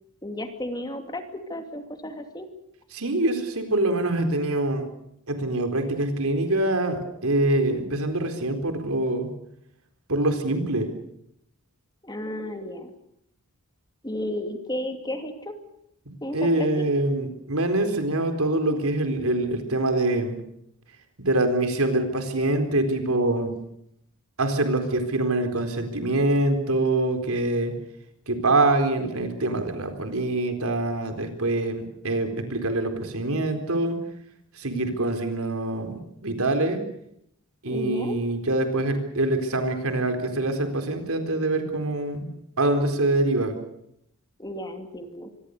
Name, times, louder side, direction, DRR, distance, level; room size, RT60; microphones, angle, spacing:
voice 1, 0.2-2.5 12.0-12.9 14.0-15.6 16.2-16.8 37.7-38.2 44.4-45.3, left 1 dB, 20° left, 6 dB, 2.5 m, -33 dB
voice 2, 2.9-4.9 5.3-9.3 10.1-10.9 16.3-20.4 21.2-23.5 24.4-27.7 28.3-34.0 34.5-36.8 37.6-42.3 42.6-43.5, right 2 dB, 75° right, 6 dB, 4.2 m, -24 dB
25.5 x 22.0 x 6.7 m, 0.75 s
head